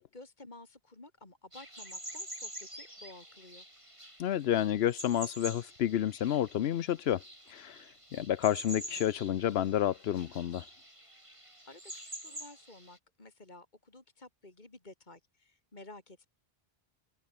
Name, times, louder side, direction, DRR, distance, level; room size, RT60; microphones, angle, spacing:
voice 1, 0.0-3.6 11.2-16.3, left 2 dB, 45° left, 3.2 m, -53 dB
sound 1, 1.5-13.0, right 1 dB, 30° right, 7.3 m, -47 dB
voice 2, 4.2-7.2 7.5-7.9 8.1-10.6, left 11 dB, 75° left, 0.9 m, -30 dB
open air
omnidirectional pair, 1.1 m